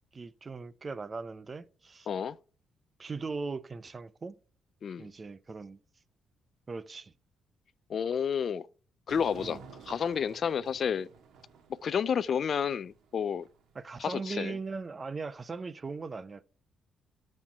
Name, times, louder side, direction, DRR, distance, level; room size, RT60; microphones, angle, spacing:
voice 1, 0.1-2.1 3.0-4.4 5.0-5.8 6.7-7.1 9.4-9.6 13.7-16.4, right 4 dB, 30° right, 0.6 m, -39 dB
voice 2, 2.1-2.4 4.8-5.1 7.9-8.7 9.1-9.6 9.9-11.1 11.8-13.5 14.0-14.6, left 7 dB, 55° left, 0.4 m, -30 dB
sound 1, 9.1-14.7, right 6 dB, 75° right, 1.7 m, -52 dB
12.5 x 4.4 x 4.6 m
cardioid pair, 90°, 0 cm